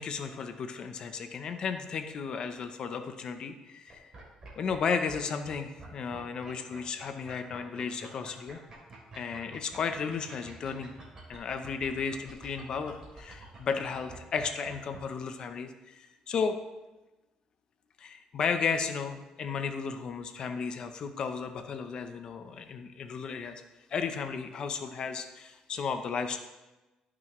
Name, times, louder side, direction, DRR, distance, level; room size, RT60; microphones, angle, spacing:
voice 1, 0.0-4.1 4.6-8.6 9.2-10.9 11.3-16.6 18.0-23.6 23.9-26.4, left 6 dB, 40° left, 7 dB, 0.7 m, -34 dB
sound 1, 3.9-4.8 5.1-5.2 5.4-15.0, right 3 dB, 30° right, 3.2 m, -48 dB
15.0 x 6.2 x 3.1 m, 1.1 s
cardioid pair, 180°, 2 cm